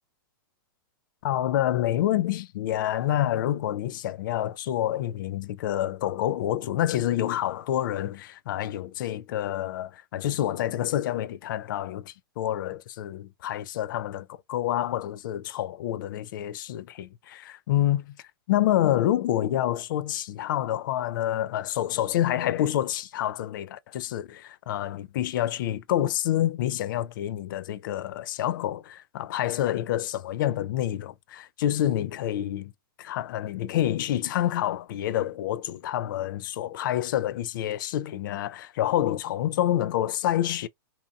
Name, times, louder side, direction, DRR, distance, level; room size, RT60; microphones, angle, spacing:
voice 1, 1.2-18.1 18.5-32.7 33.0-40.7, left 12 dB, 60° left, 0.4 m, -28 dB
2.7 x 2.2 x 2.5 m
hypercardioid pair, 115°, 12 cm